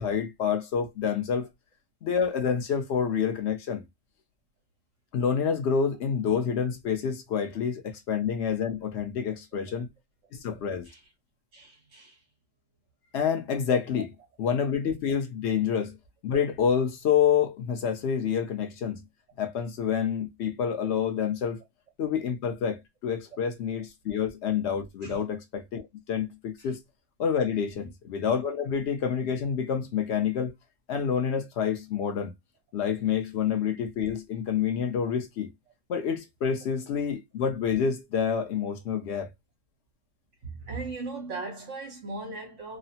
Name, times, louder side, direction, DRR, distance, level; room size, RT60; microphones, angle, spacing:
voice 1, 0.0-1.5 2.0-3.8 5.1-9.9 10.3-10.9 13.1-14.1 14.4-15.9 16.2-19.0 19.4-21.6 22.0-25.8 26.1-26.8 27.2-30.5 30.9-32.3 32.7-35.5 35.9-39.3, left 7 dB, 80° left, 0.6 m, -28 dB
voice 2, 11.5-12.2 25.0-25.2 26.6-26.7 40.5-42.8, right 3 dB, 50° right, 1.1 m, -38 dB
2.9 x 2.0 x 2.7 m
omnidirectional pair, 1.8 m